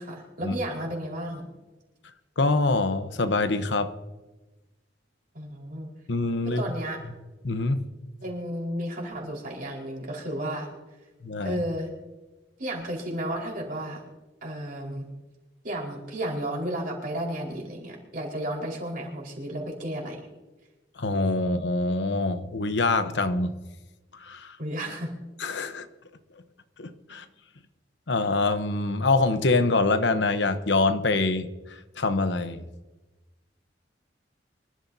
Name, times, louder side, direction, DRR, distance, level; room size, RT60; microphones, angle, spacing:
voice 1, 0.0-1.5 5.3-5.9 6.4-7.0 8.2-10.7 11.4-11.9 12.6-14.0 14.4-15.1 15.6-20.2 24.6-25.1, right 1 dB, 50° right, -1 dB, 4.6 m, -33 dB
voice 2, 2.4-3.9 6.1-6.6 7.4-7.8 11.2-11.6 21.0-23.5 24.2-24.6 25.4-25.9 26.8-27.2 28.1-32.6, left 3 dB, 75° left, 10 dB, 1.0 m, -25 dB
25.5 x 13.0 x 2.8 m, 1.1 s
head